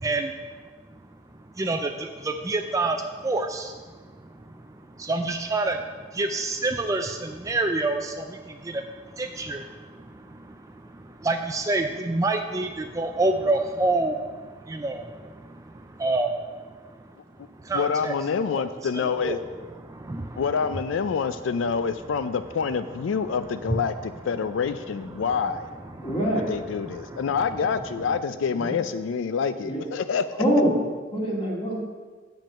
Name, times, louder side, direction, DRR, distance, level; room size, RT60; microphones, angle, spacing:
voice 1, 0.0-0.3 1.6-3.8 5.0-5.8 6.1-8.8 9.2-9.7 10.3-10.4 11.2-14.2 14.7-15.1 16.0-16.3 17.6-18.1 19.2-19.4 19.9-20.4 26.0-26.1 27.1-27.2, right 2 dB, 15° right, 5 dB, 0.4 m, -27 dB
voice 2, 17.7-19.4 20.4-25.7 26.3-30.4, left 6 dB, 90° left, 11 dB, 0.4 m, -27 dB
voice 3, 26.0-26.5 28.5-28.8 29.6-29.8 30.4-30.8 31.1-31.8, equal, 30° left, -4 dB, 2.1 m, -24 dB
7.2 x 5.3 x 7.4 m, 1.5 s
head